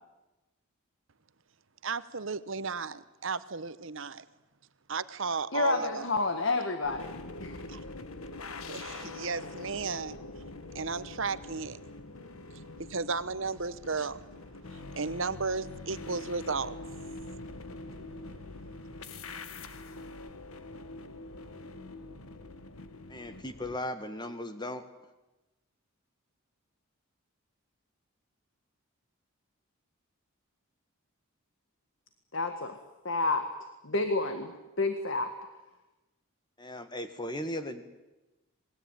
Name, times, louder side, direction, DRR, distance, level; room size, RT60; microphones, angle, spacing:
voice 1, 1.8-4.2 4.9-6.1 7.7-7.8 8.7-10.2 10.7-11.8 12.5-12.6 12.9-14.2 14.7-16.7, right 4 dB, 60° right, 15 dB, 1.0 m, -34 dB
voice 2, 5.5-7.6 32.3-32.8 33.0-33.5 33.8-35.3, left 3 dB, 60° left, 8 dB, 1.8 m, -30 dB
sound 1, 6.8-23.8, left 2 dB, 80° left, 1.6 m, -44 dB
voice 3, 23.1-24.8 36.6-37.8, left 1 dB, 20° left, 9 dB, 1.7 m, -37 dB
27.0 x 20.5 x 9.2 m, 1.1 s
head